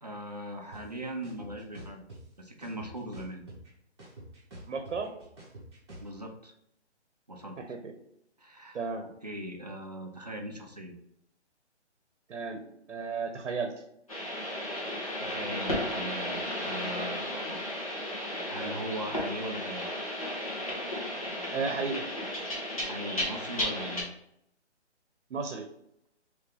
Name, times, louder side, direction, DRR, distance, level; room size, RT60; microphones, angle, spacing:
voice 1, 0.0-2.0 2.4-3.4 6.0-6.5 7.3-7.8 8.4-8.9 9.2-10.9 15.2-17.6 18.4-19.8 22.7-24.1, equal, 35° right, 3 dB, 0.4 m, -40 dB
sound 1, 0.7-0.8 1.2-2.2 2.6-3.7 4.0-6.1, right 1 dB, 20° right, 1.3 m, -46 dB
voice 2, 4.7-5.1 7.8-7.9 8.7-9.1 12.3-12.6 12.9-13.7 21.5-22.0 25.3-25.7, right 4 dB, 85° right, 5 dB, 0.7 m, -33 dB
sound 2, 14.1-24.0, left 1 dB, 30° left, 0.8 m, -34 dB
3.5 x 3.2 x 3.3 m, 0.75 s
hypercardioid pair, 175°, 35 cm